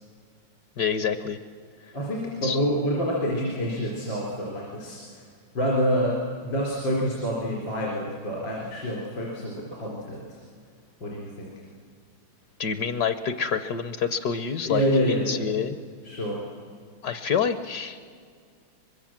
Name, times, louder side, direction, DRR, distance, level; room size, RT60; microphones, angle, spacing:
voice 1, 0.8-1.4 2.4-2.6 12.6-15.8 17.0-18.0, left 7 dB, 65° left, 10 dB, 1.3 m, -27 dB
voice 2, 1.9-5.2 5.5-10.4 11.0-11.6 14.6-15.4 16.0-16.5, equal, 80° left, -3 dB, 4.4 m, -27 dB
24.0 x 22.5 x 7.3 m, 2.1 s
omnidirectional pair, 2.0 m